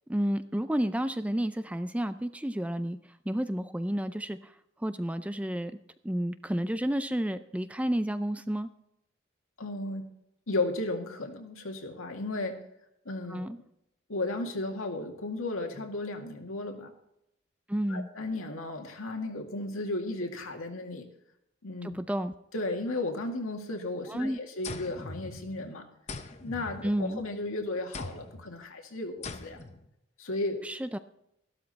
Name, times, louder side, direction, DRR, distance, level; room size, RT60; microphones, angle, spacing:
voice 1, 0.1-3.0 3.3-4.5 4.8-8.7 13.3-13.6 17.7-18.1 21.8-22.3 24.1-24.4 26.8-27.2 30.6-31.0, equal, 5° right, 11 dB, 0.4 m, -31 dB
voice 2, 9.6-10.0 10.5-12.6 13.1-13.5 14.1-16.9 17.9-21.1 21.6-21.9 22.5-25.9 26.4-29.6 30.2-30.6, left 2 dB, 85° left, 3 dB, 2.1 m, -34 dB
sound 1, 24.6-25.7 26.1-27.4 27.9-28.5 29.2-29.9, left 3 dB, 30° left, 0.8 m, -41 dB
13.5 x 12.5 x 4.2 m, 0.80 s
head